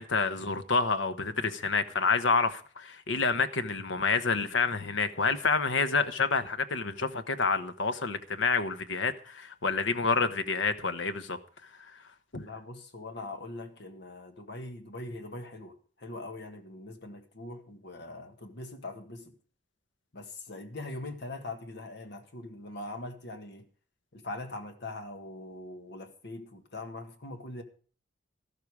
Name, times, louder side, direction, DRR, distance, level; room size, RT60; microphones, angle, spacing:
voice 1, 0.0-11.4 11.8-11.9 12.3-12.4, left 4 dB, 75° left, 1.1 m, -28 dB
voice 2, 12.4-19.3 20.1-23.7 24.1-27.6, left 2 dB, 60° left, 1.7 m, -42 dB
13.5 x 12.5 x 4.8 m
head